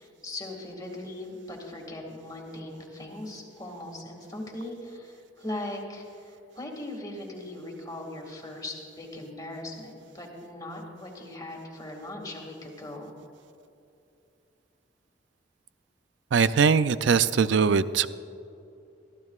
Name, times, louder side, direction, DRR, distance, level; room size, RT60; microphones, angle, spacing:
voice 1, 0.0-13.1, left 1 dB, 20° left, 0 dB, 2.0 m, -39 dB
voice 2, 16.3-18.1, right 6 dB, 70° right, 14 dB, 0.4 m, -21 dB
23.0 x 14.0 x 2.4 m, 2.7 s
head